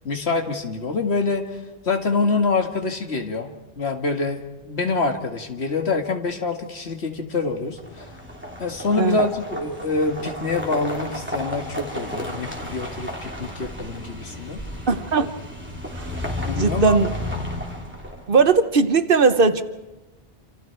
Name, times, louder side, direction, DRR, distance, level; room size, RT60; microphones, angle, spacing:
voice 1, 0.0-3.5 3.8-8.1 8.6-14.6 16.4-17.1, left 3 dB, 85° left, 4 dB, 2.1 m, -25 dB
sound 1, 7.7-18.5, left 1 dB, 10° right, 3.1 m, -32 dB
voice 2, 14.9-15.3 15.9-16.1 16.6-17.1 18.3-19.6, right 4 dB, 60° right, 10 dB, 1.2 m, -18 dB
27.5 x 27.5 x 4.6 m, 1.1 s
omnidirectional pair, 1.1 m